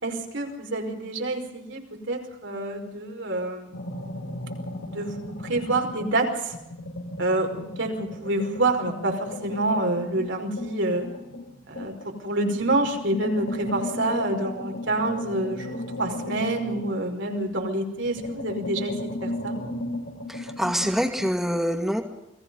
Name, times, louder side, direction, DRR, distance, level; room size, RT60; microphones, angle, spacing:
voice 1, 0.0-3.8 4.9-6.5 7.2-11.1 11.7-19.5, right 2 dB, 70° right, 3 dB, 5.2 m, -27 dB
sound 1, 3.7-6.2 6.5-12.1 12.6-17.6 18.0-21.3, left 1 dB, 80° left, 7.1 m, -36 dB
voice 2, 20.3-22.0, equal, ahead, 3 dB, 2.2 m, -25 dB
29.5 x 20.5 x 5.5 m, 0.88 s
head